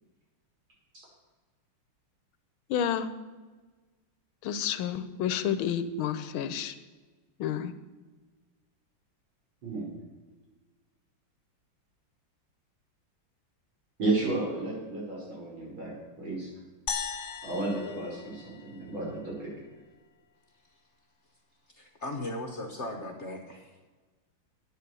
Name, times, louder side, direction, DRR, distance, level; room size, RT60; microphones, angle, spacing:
voice 1, 2.7-3.1 4.4-6.7 7.4-7.7, left 9 dB, 85° left, 12 dB, 1.6 m, -30 dB
voice 2, 14.0-15.9 16.2-16.5 16.9-17.0 17.4-19.5, right 2 dB, 75° right, -4 dB, 5.7 m, -32 dB
sound 1, 16.9-19.3, left 6 dB, 55° left, 0.8 m, -38 dB
voice 3, 21.7-23.8, left 1 dB, 40° left, 3 dB, 1.3 m, -37 dB
11.5 x 9.3 x 6.9 m, 1.3 s
omnidirectional pair, 2.2 m